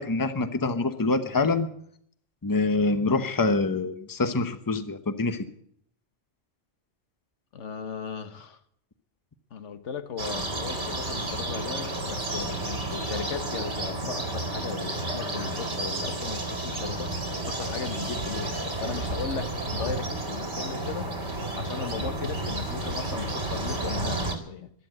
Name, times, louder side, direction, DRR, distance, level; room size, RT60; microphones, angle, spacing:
voice 1, 0.0-1.7 2.4-5.4, left 3 dB, 20° left, 10 dB, 0.9 m, -25 dB
voice 2, 7.5-8.6 9.5-17.1 17.4-21.1 21.5-24.7, left 6 dB, 90° left, 10 dB, 1.4 m, -37 dB
sound 1, 10.2-24.4, right 2 dB, 65° right, 2.4 m, -31 dB
14.5 x 11.0 x 7.7 m, 0.68 s
omnidirectional pair, 1.2 m